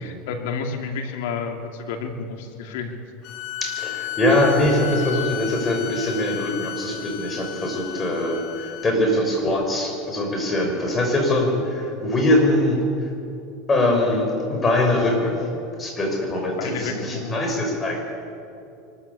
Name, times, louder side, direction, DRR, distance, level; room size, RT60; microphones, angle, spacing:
voice 1, 0.0-2.9 14.1-14.2 16.6-17.4, left 5 dB, 75° left, 5 dB, 2.6 m, -30 dB
sound 1, 3.2-8.9, left 13 dB, 55° left, 1.3 m, -33 dB
voice 2, 3.6-13.1 13.7-15.5 15.8-18.1, left 1 dB, 20° left, 1 dB, 6.1 m, -22 dB
24.0 x 14.0 x 8.4 m, 2.6 s
supercardioid pair, 115°, 0 cm